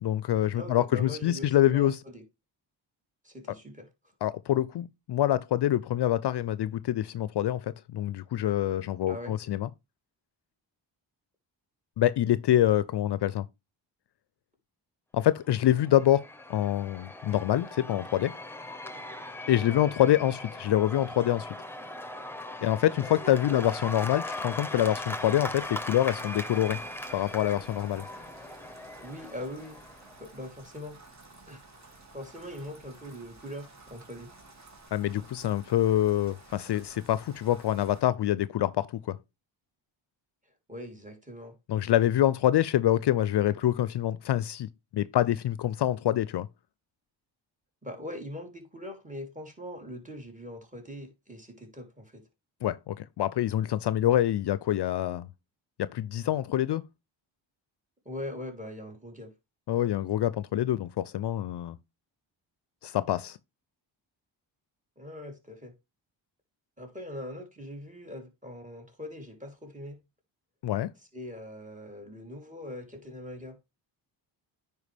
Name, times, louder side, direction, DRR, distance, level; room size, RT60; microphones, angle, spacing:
voice 1, 0.0-2.0 4.2-9.7 12.0-13.4 15.1-16.2 16.5-18.3 19.5-21.5 22.6-26.8 27.1-28.1 34.9-39.2 41.7-46.5 52.6-55.3 55.8-56.8 59.7-61.8 62.8-63.4 70.6-70.9, left 12 dB, 60° left, 0.5 m, -26 dB
voice 2, 0.5-2.2 3.2-3.9 9.1-9.4 19.6-19.9 23.3-23.6 29.0-29.8 30.2-31.0 31.5-31.6 32.1-34.3 40.7-41.6 47.8-52.2 58.0-59.3 65.0-65.7 66.8-70.0 71.1-73.6, left 1 dB, 15° right, 3.3 m, -41 dB
Cheering / Applause / Crowd, 15.5-30.2, left 1 dB, 5° left, 1.2 m, -39 dB
Rain, 24.9-38.0, right 3 dB, 35° right, 2.4 m, -53 dB
9.7 x 4.7 x 3.3 m
cardioid pair, 65°, 47 cm